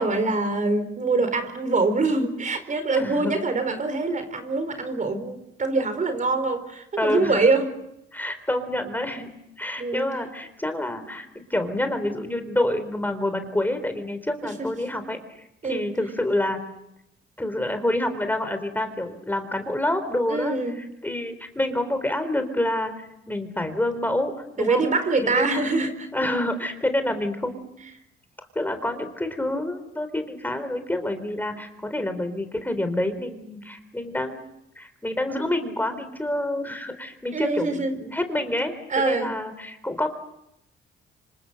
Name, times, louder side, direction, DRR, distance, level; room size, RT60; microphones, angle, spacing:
voice 1, 0.0-7.7 9.8-10.1 14.4-14.7 15.6-15.8 20.3-20.8 24.6-26.1 37.3-37.9 38.9-39.3, right 3 dB, 40° right, 10 dB, 4.5 m, -24 dB
voice 2, 3.0-3.3 7.0-7.5 8.1-16.6 17.4-20.6 21.0-22.9 23.3-24.9 25.3-25.6 26.1-27.8 28.6-34.4 34.8-40.1, left 1 dB, 10° left, 8 dB, 3.9 m, -27 dB
27.0 x 25.0 x 6.8 m, 0.81 s
cardioid pair, 90°, 20 cm